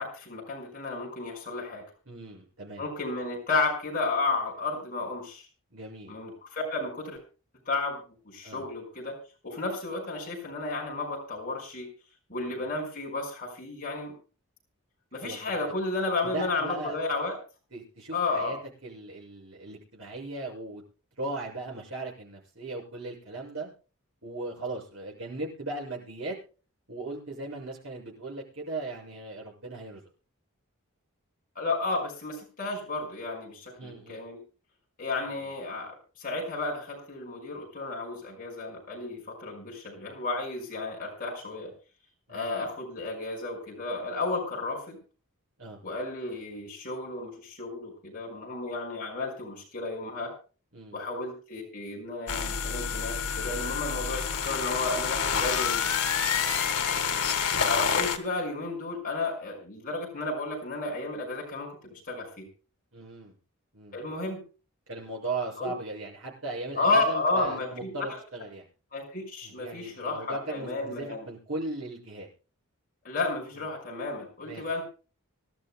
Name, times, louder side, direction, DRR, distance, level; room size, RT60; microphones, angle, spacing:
voice 1, 0.0-1.8 2.8-5.5 6.1-7.2 7.7-9.2 9.4-11.9 12.3-14.1 15.1-17.4 18.1-18.6 31.6-34.4 35.0-41.7 42.3-45.0 45.8-50.3 50.9-55.9 57.6-62.5 63.9-64.4 65.6-65.7 66.8-67.9 68.9-71.3 73.0-74.8, left 3 dB, 40° left, -1 dB, 5.6 m, -32 dB
voice 2, 2.1-2.8 5.7-6.1 8.4-8.7 12.4-12.6 15.2-15.6 16.2-17.2 17.7-18.6 18.8-20.8 21.2-23.7 24.2-26.4 26.9-30.0 33.8-34.2 35.2-35.5 42.3-42.7 45.6-45.8 50.7-51.0 56.8-57.2 62.9-63.4 63.7-64.0 64.9-68.7 69.4-72.3 73.6-73.7 74.4-74.6, right 2 dB, 65° right, -1 dB, 6.9 m, -38 dB
sound 1, 52.3-58.2, left 7 dB, 90° left, 1.8 m, -28 dB
25.0 x 12.5 x 2.3 m, 0.36 s
head